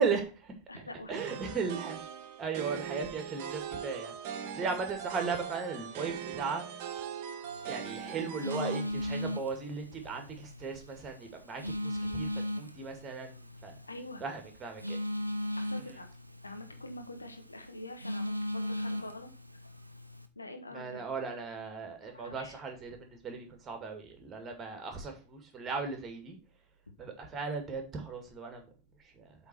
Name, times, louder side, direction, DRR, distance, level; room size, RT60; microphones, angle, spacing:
voice 1, 0.0-0.5 1.1-2.0 2.4-4.1 4.5-6.6 7.7-12.3 12.5-13.7 14.2-15.0 20.7-26.4 27.0-28.6, right 5 dB, 25° right, 5 dB, 2.1 m, -36 dB
voice 2, 0.7-1.4 12.0-12.2 13.9-14.2 15.6-16.1 16.4-19.3 20.3-21.0 22.1-22.6, left 2 dB, 80° left, 5 dB, 1.3 m, -45 dB
sound 1, 1.1-8.8, right 8 dB, 45° right, 1.3 m, -41 dB
Telephone, 7.4-20.3, left 1 dB, 85° right, 0.7 m, -38 dB
8.2 x 3.8 x 6.0 m, 0.34 s
figure-of-eight pair, 90°, 0 cm